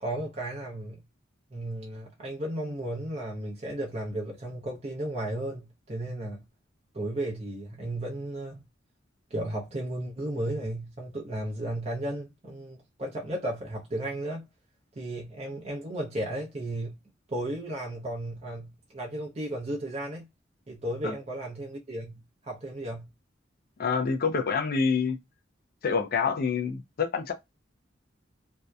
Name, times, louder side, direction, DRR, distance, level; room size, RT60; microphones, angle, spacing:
voice 1, 0.0-1.0 1.5-6.4 6.9-8.6 9.3-14.4 15.0-16.9 17.3-20.2 20.7-23.0, right 1 dB, 35° right, 0.6 m, -34 dB
voice 2, 23.8-25.2 25.8-27.3, left 5 dB, 50° left, 0.4 m, -27 dB
2.7 x 2.1 x 2.2 m
head